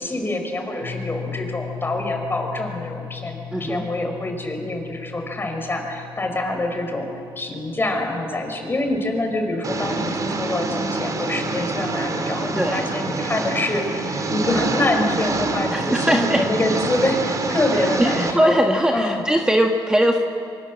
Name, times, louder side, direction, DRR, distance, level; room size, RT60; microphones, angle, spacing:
voice 1, 0.0-7.1 7.4-18.6 18.9-19.2, left 1 dB, 25° left, 4 dB, 5.3 m, -25 dB
sound 1, 0.8-10.4, left 9 dB, 70° left, 5.6 m, -38 dB
voice 2, 3.5-3.9 12.5-12.9 15.7-16.4 17.8-20.2, equal, 10° right, 2 dB, 1.6 m, -20 dB
Engine, 9.6-18.3, right 3 dB, 40° right, 2.9 m, -26 dB
25.5 x 24.0 x 7.5 m, 2.6 s
cardioid pair, 85°, 9 cm